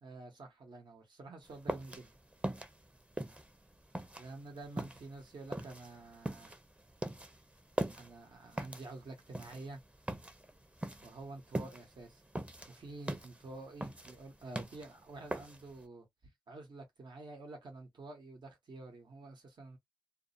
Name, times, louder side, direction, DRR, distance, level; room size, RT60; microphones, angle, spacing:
voice 1, 0.0-2.1 4.2-6.5 8.0-9.8 11.0-12.2 12.7-16.1 16.5-19.8, right 2 dB, 80° right, 1.0 m, -49 dB
sound 1, 1.5-15.8, right 1 dB, 15° right, 0.5 m, -41 dB
2.5 x 2.0 x 2.5 m
cardioid pair, 55°, 8 cm